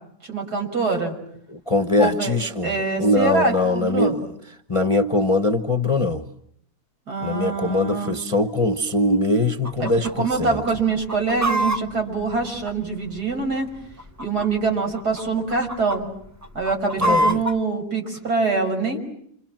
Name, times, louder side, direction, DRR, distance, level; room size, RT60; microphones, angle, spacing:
voice 1, 0.3-1.1 2.0-2.3 2.6-4.1 7.1-8.1 9.8-9.9 10.2-13.7 14.2-16.1 16.5-19.0, right 4 dB, 70° right, 3 dB, 6.7 m, -24 dB
voice 2, 1.5-4.3 4.7-6.2 7.2-10.6 17.0-17.4, left 2 dB, 20° left, 7 dB, 1.1 m, -22 dB
Chicken rooster, 9.6-10.1 10.4-10.5 10.9-13.2 13.9-14.7 15.0-15.2 15.5-16.0 16.4-17.6, right 1 dB, 10° right, 1.2 m, -24 dB
28.5 x 28.0 x 7.5 m, 0.70 s
omnidirectional pair, 1.8 m